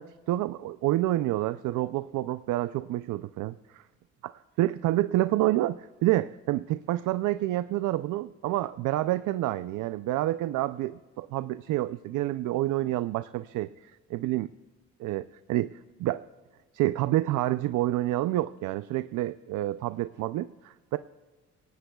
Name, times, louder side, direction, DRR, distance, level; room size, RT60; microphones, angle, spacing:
voice 1, 0.0-3.8 4.2-4.3 4.6-13.7 14.1-14.5 15.0-15.7 16.0-16.2 16.7-21.0, right 15 dB, 80° right, 13 dB, 0.5 m, -28 dB
27.5 x 17.5 x 2.3 m, 1.3 s
cardioid pair, 90°, 30 cm